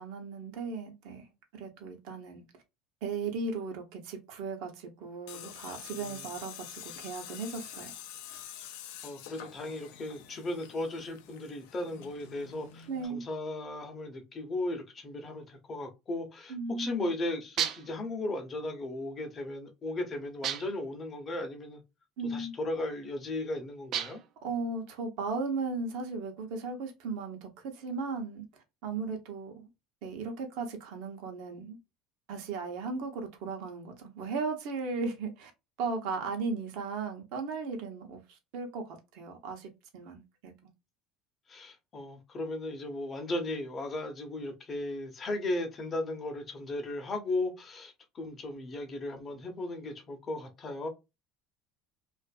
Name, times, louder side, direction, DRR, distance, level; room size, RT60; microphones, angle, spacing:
voice 1, 0.0-2.4 3.0-8.0 12.9-13.2 16.5-17.1 22.2-22.5 24.4-28.4 28.8-29.7 30.0-31.8 32.3-35.5 35.8-40.5, right 4 dB, 70° right, 0.8 m, -36 dB
Tools, 5.3-13.1, left 10 dB, 80° left, 0.4 m, -47 dB
voice 2, 5.9-6.3 9.0-21.8 22.2-24.2 41.5-50.9, left 2 dB, 30° left, 0.7 m, -36 dB
sound 1, 17.6-18.0 20.4-20.9 23.9-24.4, right 9 dB, 50° right, 0.3 m, -33 dB
2.6 x 2.4 x 2.3 m
supercardioid pair, 115°, 0 cm